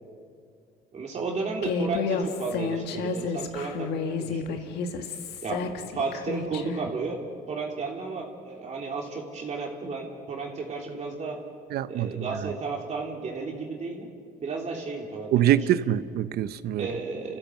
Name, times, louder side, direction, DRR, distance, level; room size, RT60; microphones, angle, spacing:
voice 1, 0.9-4.8 5.4-7.2 7.5-11.4 11.9-14.1 14.4-15.6 16.8-17.4, right 4 dB, 45° right, 3.2 m, -33 dB
Human voice, 1.6-6.8, left 5 dB, 75° left, 1.8 m, -31 dB
voice 2, 11.7-12.3 15.3-16.9, right 11 dB, 70° right, 0.8 m, -24 dB
29.0 x 15.5 x 7.7 m
cardioid pair, 110°, 17 cm